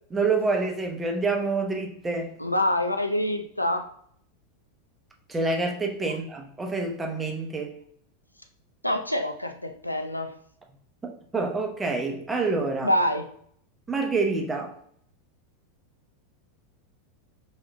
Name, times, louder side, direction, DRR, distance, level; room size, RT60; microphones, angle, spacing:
voice 1, 0.1-2.3 5.3-7.7 11.0-12.9 13.9-14.7, right 3 dB, 15° right, 0.9 m, -27 dB
voice 2, 2.4-3.9 6.1-6.2 8.8-10.3 12.8-13.3, left 1 dB, 90° left, 0.4 m, -26 dB
3.7 x 3.1 x 3.4 m
figure-of-eight pair, 85°, 0 cm